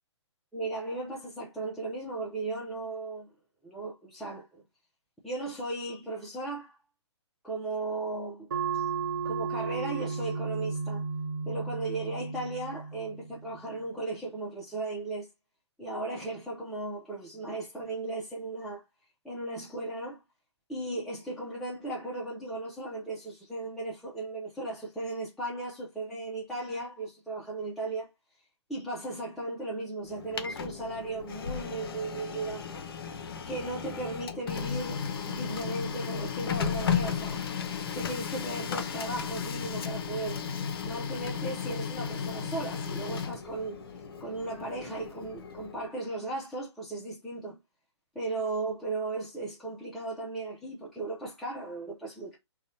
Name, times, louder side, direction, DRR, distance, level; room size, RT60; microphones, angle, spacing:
voice 1, 0.5-3.3 3.6-4.6 5.2-6.8 7.4-8.8 9.3-11.0 11.4-15.3 15.8-18.8 19.2-20.2 20.7-28.1 28.7-32.8 33.1-37.4 37.9-40.4 40.8-43.8 44.2-47.6 48.1-52.4, right 2 dB, ahead, 0.4 m, -36 dB
sound 1, 8.5-13.6, right 5 dB, 45° right, 0.8 m, -34 dB
Printer, 30.1-45.9, left 7 dB, 55° left, 0.5 m, -35 dB
2.7 x 2.1 x 3.9 m
figure-of-eight pair, 140°, 15 cm